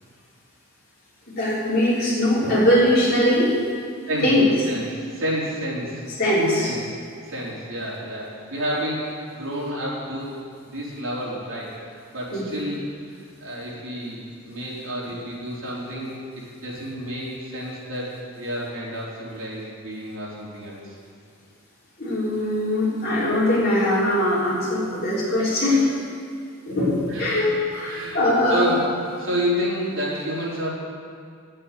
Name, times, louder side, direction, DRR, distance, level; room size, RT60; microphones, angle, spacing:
voice 1, 1.4-3.6 4.2-4.5 6.2-6.7 12.3-12.6 22.0-25.9 26.7-28.8, left 1 dB, 45° left, -7 dB, 3.7 m, -21 dB
voice 2, 4.7-6.0 6.6-6.8 7.3-10.3 10.7-11.7 12.1-12.8 13.1-20.8 27.1-27.4 27.9-28.2 28.5-28.8 29.2-30.7, equal, 65° right, -6 dB, 4.0 m, -30 dB
10.5 x 8.8 x 9.1 m, 2.2 s
head